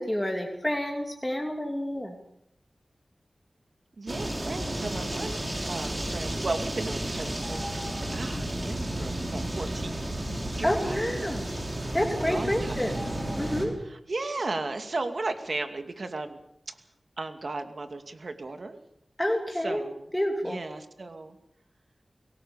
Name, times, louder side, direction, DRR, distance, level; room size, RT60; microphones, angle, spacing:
voice 1, 0.0-2.1 10.6-11.5 11.9-12.9 13.4-13.7 19.2-19.8 20.1-20.6, equal, 10° left, 1 dB, 2.9 m, -28 dB
voice 2, 4.0-5.4 5.7-10.1 10.6-11.3 12.3-13.2 13.8-16.4 16.7-16.8 17.2-18.8 19.5-20.1 20.4-21.4, right 3 dB, 65° right, 7 dB, 2.4 m, -35 dB
sound 1, 4.1-13.6, right 1 dB, 25° right, 5.9 m, -32 dB
23.5 x 18.0 x 7.0 m, 0.78 s
wide cardioid pair, 60°, 0 cm